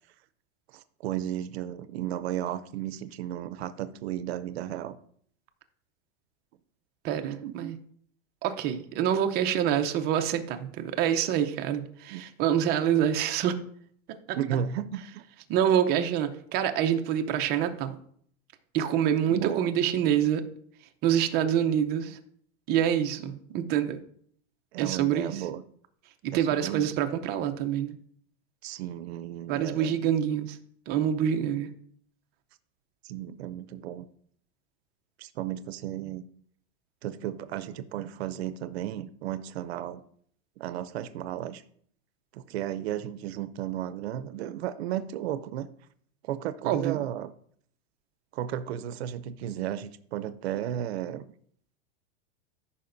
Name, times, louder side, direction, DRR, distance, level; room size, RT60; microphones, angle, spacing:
voice 1, 0.7-5.0 7.4-7.7 12.1-12.2 14.3-15.2 19.3-19.7 24.7-25.6 26.3-26.9 28.6-30.0 33.0-34.0 35.2-36.2 37.0-40.0 40.6-41.6 42.3-45.7 46.2-47.3 48.3-51.2, right 11 dB, 80° right, 13 dB, 0.6 m, -34 dB
voice 2, 7.0-7.8 8.4-13.6 14.3-14.4 15.5-17.9 18.7-20.4 21.0-22.2 22.7-24.0 24.8-25.4 26.2-28.0 29.5-30.6 30.9-31.7 46.6-47.0, right 9 dB, 30° right, 6 dB, 0.7 m, -26 dB
14.0 x 5.7 x 2.6 m, 0.62 s
supercardioid pair, 155°, 31 cm